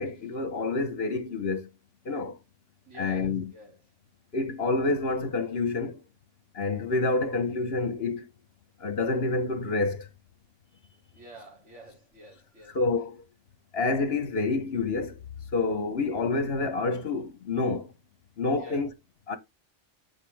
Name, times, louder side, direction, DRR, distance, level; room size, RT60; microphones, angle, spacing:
voice 1, 0.0-1.7 2.0-2.4 3.0-3.5 4.3-6.0 6.5-8.2 8.8-10.1 12.7-13.2 13.7-15.2 15.5-17.9 18.4-18.9 19.3-19.4, left 3 dB, 55° left, 1.2 m, -28 dB
voice 2, 2.8-3.8 11.1-12.8 18.5-18.8, right 1 dB, 70° right, 3.3 m, -48 dB
8.2 x 5.4 x 3.4 m
omnidirectional pair, 1.2 m